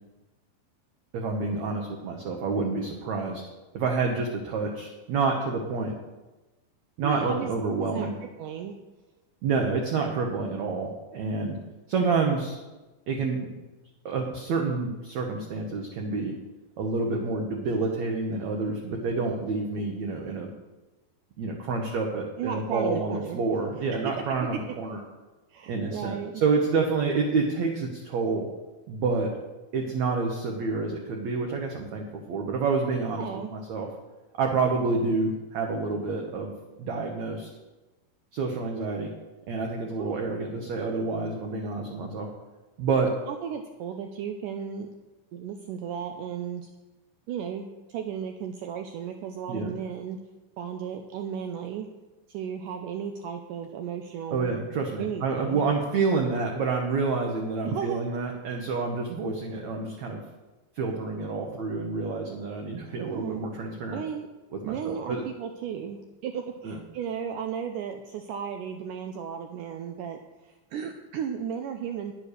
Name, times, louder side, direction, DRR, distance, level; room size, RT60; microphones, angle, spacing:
voice 1, 1.1-3.4 3.7-5.9 7.0-8.2 9.4-11.6 11.9-12.6 13.1-13.5 14.0-16.3 16.8-20.5 21.4-25.0 25.7-28.5 28.9-29.3 29.7-33.2 33.5-33.9 34.4-36.5 36.8-37.5 38.3-39.1 39.5-42.3 42.8-43.1 49.5-49.7 54.3-60.2 60.7-64.0 64.6-65.2 66.6-66.8, right 4 dB, 70° right, 1 dB, 1.8 m, -28 dB
voice 2, 7.0-7.5 7.9-8.1 8.4-8.8 22.4-23.4 25.5-26.4 33.1-33.5 40.0-40.2 43.3-44.9 45.3-46.7 47.3-50.2 50.6-51.9 52.3-54.5 55.0-55.6 57.6-58.0 63.0-63.4 63.9-64.3 64.7-72.1, right 8 dB, 90° right, 5 dB, 1.8 m, -34 dB
10.0 x 7.4 x 6.6 m, 1.1 s
omnidirectional pair, 4.4 m